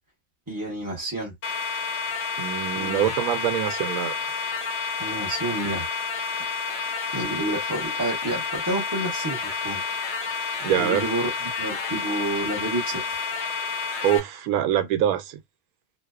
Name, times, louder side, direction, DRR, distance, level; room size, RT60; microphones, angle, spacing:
voice 1, 0.5-1.3 2.7-3.0 5.0-6.4 7.1-9.8 10.7-13.2, right 2 dB, 20° right, 0.7 m, -30 dB
sound 1, 1.4-14.2, left 5 dB, 65° left, 0.8 m, -30 dB
voice 2, 2.4-4.1 10.6-11.0 14.0-15.4, right 10 dB, 90° right, 1.0 m, -24 dB
2.7 x 2.1 x 2.3 m
omnidirectional pair, 1.5 m